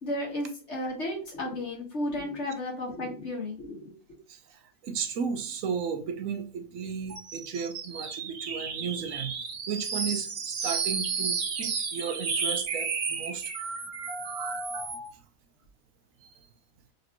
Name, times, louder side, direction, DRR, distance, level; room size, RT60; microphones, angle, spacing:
voice 1, 0.0-3.9, left 1 dB, 55° left, 1.7 m, -33 dB
voice 2, 4.3-9.4 9.7-13.5, right 6 dB, 80° right, 1.0 m, -34 dB
sound 1, 7.1-15.1, right 5 dB, 55° right, 1.0 m, -32 dB
4.0 x 3.1 x 2.8 m
omnidirectional pair, 1.4 m